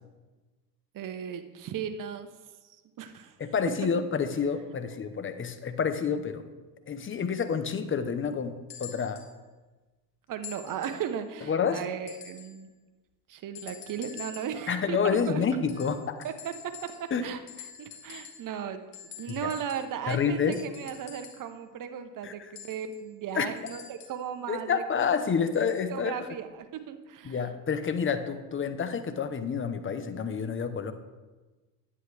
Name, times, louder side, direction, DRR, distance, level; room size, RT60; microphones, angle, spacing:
voice 1, 0.9-2.3 2.6-3.4 10.3-12.7 13.3-15.4 16.2-17.4 17.8-18.8 19.2-25.1 25.9-27.5, right 8 dB, 40° right, 9 dB, 1.0 m, -36 dB
voice 2, 3.4-6.4 6.9-9.2 11.5-11.8 14.7-16.2 17.1-17.3 19.3-19.5 20.1-20.6 22.2-22.3 23.4-23.5 24.5-26.1 27.2-30.9, left 6 dB, 25° left, 10 dB, 0.9 m, -29 dB
sound 1, 8.7-9.3 10.4-11.1 12.1-12.6 13.5-14.6 15.7-17.2 17.5-18.5 18.9-21.5 22.5-24.3 25.5-25.9 26.8-26.9, left 9 dB, 60° left, 2.1 m, -47 dB
10.5 x 9.3 x 3.4 m, 1.2 s
hypercardioid pair, 85°, 49 cm